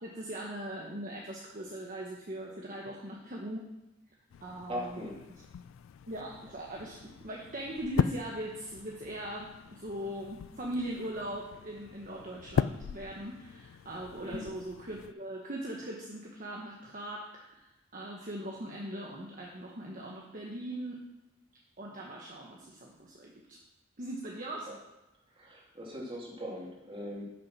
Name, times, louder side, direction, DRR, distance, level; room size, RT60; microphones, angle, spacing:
voice 1, 0.0-3.7 4.4-5.1 6.1-21.0 21.8-23.6 24.0-24.7, right 1 dB, 45° right, -2 dB, 1.2 m, -40 dB
sound 1, 4.3-15.1, left 7 dB, 85° left, 0.3 m, -38 dB
voice 2, 4.7-5.2 14.2-14.5 25.4-27.2, equal, 30° right, -3 dB, 2.6 m, -40 dB
9.8 x 6.4 x 6.0 m, 0.98 s
head